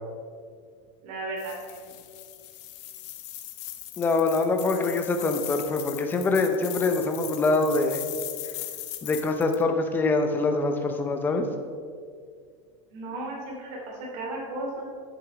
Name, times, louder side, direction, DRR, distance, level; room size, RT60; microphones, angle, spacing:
voice 1, 1.0-2.0 12.9-14.8, right 2 dB, 45° right, -2 dB, 2.8 m, -35 dB
sound 1, 1.4-9.6, left 13 dB, 60° left, 0.9 m, -39 dB
voice 2, 4.0-8.0 9.0-11.5, left 3 dB, 10° left, 5 dB, 0.6 m, -24 dB
9.8 x 7.5 x 4.9 m, 2.1 s
supercardioid pair, 175°, 17 cm